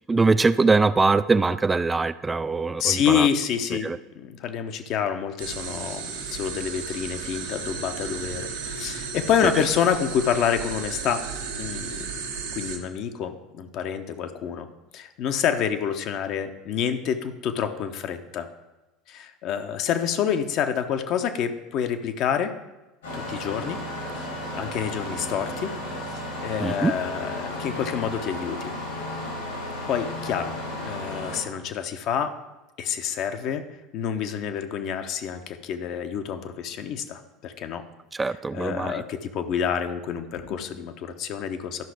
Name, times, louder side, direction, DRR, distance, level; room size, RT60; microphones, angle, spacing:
voice 1, 0.1-3.3 3.8-4.0 9.4-9.5 26.6-26.9 38.1-39.0, right 3 dB, 20° right, 13 dB, 0.3 m, -22 dB
voice 2, 2.8-11.2 11.6-12.1 12.5-14.7 14.9-18.5 19.1-22.5 23.1-23.8 24.2-25.7 26.1-28.7 29.9-32.3 32.8-33.6 33.9-37.8 38.5-41.8, left 8 dB, 55° left, 7 dB, 0.9 m, -28 dB
sound 1, 5.4-12.8, right 5 dB, 80° right, 1.4 m, -34 dB
Engine starting, 23.0-31.4, left 1 dB, 85° left, 3.1 m, -34 dB
12.0 x 5.8 x 4.9 m, 1.0 s
hypercardioid pair, 70°, 0 cm